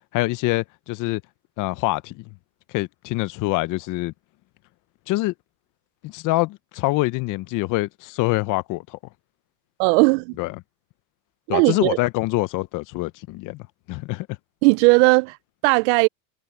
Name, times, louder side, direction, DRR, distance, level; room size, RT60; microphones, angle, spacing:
voice 1, 0.1-1.2 1.6-2.2 2.7-4.1 5.1-5.3 6.0-9.0 10.4-10.5 11.5-14.3, left 20 dB, 50° left, 0.8 m, -25 dB
voice 2, 9.8-10.4 11.5-12.0 14.6-15.4 15.6-16.1, right 28 dB, 70° right, 0.5 m, -17 dB
supercardioid pair, 120°, 40 cm